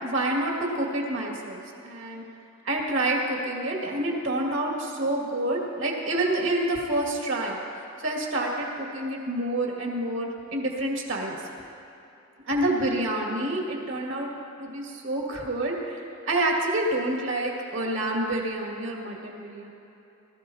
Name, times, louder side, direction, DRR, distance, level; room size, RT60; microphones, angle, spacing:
voice 1, 0.0-2.2 2.7-7.6 8.0-11.4 12.5-14.3 14.6-16.0 16.3-19.7, right 1 dB, 70° right, -1 dB, 2.2 m, -28 dB
20.5 x 13.0 x 2.9 m, 2.8 s
head